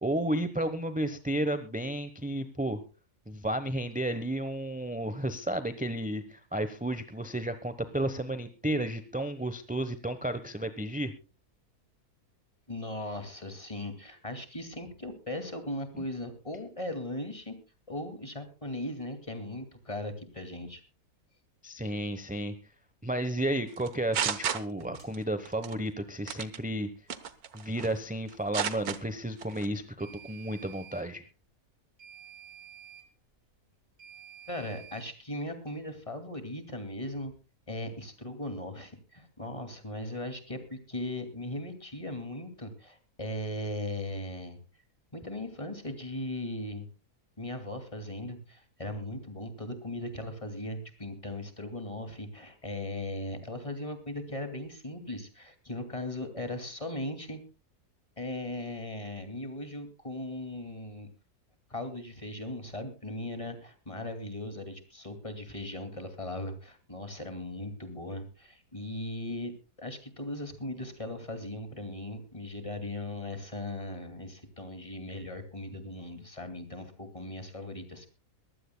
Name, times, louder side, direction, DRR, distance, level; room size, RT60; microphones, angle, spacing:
voice 1, 0.0-2.8 3.3-11.1 21.6-22.5 23.0-26.9 27.5-31.2, right 1 dB, 5° right, 10 dB, 0.7 m, -32 dB
voice 2, 12.7-17.5 17.9-20.8 24.8-24.9 34.5-37.3 37.7-44.6 45.1-46.9 47.4-57.4 58.2-61.1 61.7-69.5 69.8-78.1, left 1 dB, 20° left, 8 dB, 2.5 m, -38 dB
sound 1, 23.8-25.2 25.5-25.7 26.3-26.6 27.1-28.0 28.3-29.0 29.4-29.7, right 8 dB, 75° right, 1.6 m, -32 dB
sound 2, 25.0-25.1 30.0-31.1 32.0-33.1 34.0-35.1, right 9 dB, 40° right, 2.9 m, -50 dB
23.0 x 15.5 x 2.2 m, 0.32 s
omnidirectional pair, 1.6 m